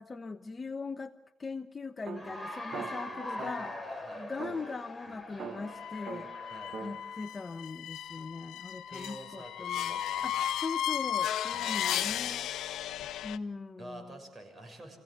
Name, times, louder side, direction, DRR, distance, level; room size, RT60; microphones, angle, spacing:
voice 1, 0.0-3.7 4.2-6.3 6.8-12.5 13.2-14.2, left 4 dB, 30° left, 9 dB, 1.0 m, -40 dB
sound 1, 2.0-3.9 4.4-7.0, right 7 dB, 60° right, 1.5 m, -44 dB
Cheering / Applause, 2.1-7.3, left 2 dB, 10° left, 3.7 m, -42 dB
voice 2, 3.4-4.3 6.5-6.8 8.9-10.4 11.5-11.8 13.8-15.0, right 1 dB, 25° right, 4 dB, 6.9 m, -48 dB
sound 2, 5.7-13.4, left 10 dB, 80° left, 0.8 m, -35 dB
26.5 x 16.5 x 8.1 m, 0.94 s
cardioid pair, 90°, 0 cm